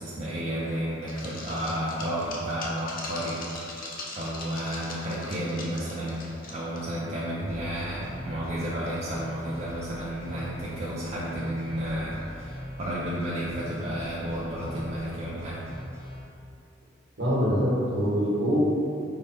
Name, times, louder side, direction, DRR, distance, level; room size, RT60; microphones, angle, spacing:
voice 1, 0.0-3.4 4.1-6.2 6.5-15.6, equal, 35° right, -7 dB, 0.4 m, -32 dB
sound 1, 1.1-6.9 7.1-7.3 7.6-7.7 8.9-9.2, left 2 dB, 45° left, 0.6 m, -40 dB
sound 2, 7.5-16.2, equal, 15° right, 0.9 m, -42 dB
voice 2, 17.2-18.6, equal, 60° right, -7 dB, 1.2 m, -24 dB
4.7 x 2.1 x 4.4 m, 2.7 s
head